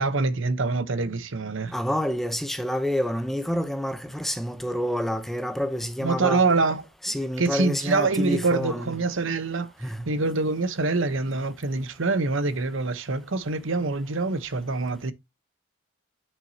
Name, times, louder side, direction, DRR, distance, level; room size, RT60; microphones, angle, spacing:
voice 1, 0.0-1.7 6.0-6.8 7.4-15.1, right 3 dB, 65° right, 0.9 m, -25 dB
voice 2, 1.7-6.4 7.0-8.9 9.8-10.0, equal, ahead, 0.6 m, -28 dB
9.5 x 6.1 x 2.8 m
head